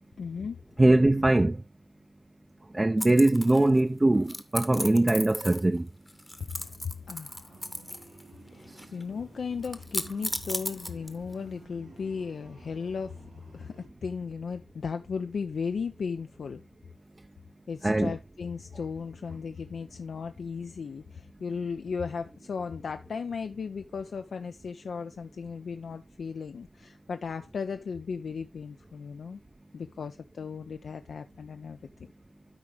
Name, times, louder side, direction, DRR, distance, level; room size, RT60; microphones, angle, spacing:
voice 1, 0.2-0.6 6.5-6.8 7.1-7.6 8.5-13.2 13.5-16.6 17.7-29.4 29.7-31.8, left 5 dB, 80° left, 0.5 m, -36 dB
voice 2, 0.8-1.6 2.7-5.9 17.8-18.1, right 2 dB, 20° right, 0.4 m, -22 dB
sound 1, 3.0-3.8 4.3-5.8 6.1-8.2 8.5-9.0 9.6-11.3, left 1 dB, 10° left, 0.9 m, -36 dB
sound 2, 7.5-13.8, right 3 dB, 85° right, 2.9 m, -53 dB
12.5 x 4.8 x 3.3 m
wide cardioid pair, 135°, 0 cm